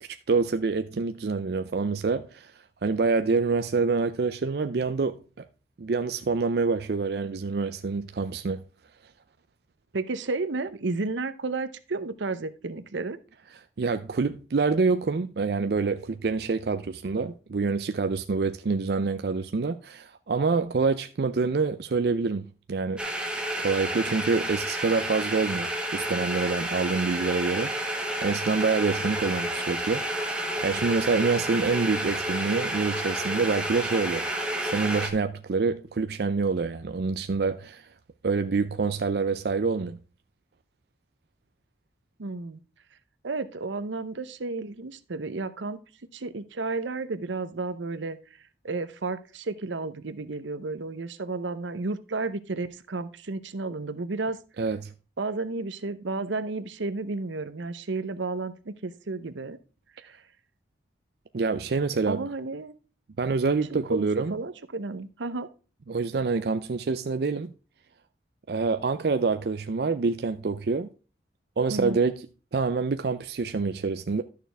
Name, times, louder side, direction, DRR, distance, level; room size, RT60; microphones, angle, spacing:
voice 1, 0.3-5.5 5.8-8.6 13.8-23.0 23.6-27.7 28.0-30.0 30.6-34.2 34.6-37.9 38.2-40.0 54.6-54.9 61.3-62.3 63.2-64.4 65.9-67.5 68.5-70.9 71.6-72.2 72.5-74.2, right 4 dB, 55° right, 0.4 m, -26 dB
voice 2, 9.9-13.2 42.2-42.6 43.2-45.8 46.1-48.2 48.6-54.4 55.2-59.6 60.0-60.2 62.1-62.7 63.7-65.5 71.7-72.0, right 3 dB, 85° right, 0.8 m, -32 dB
sound 1, 23.0-35.1, right 1 dB, 5° right, 1.3 m, -30 dB
11.5 x 6.6 x 3.4 m
head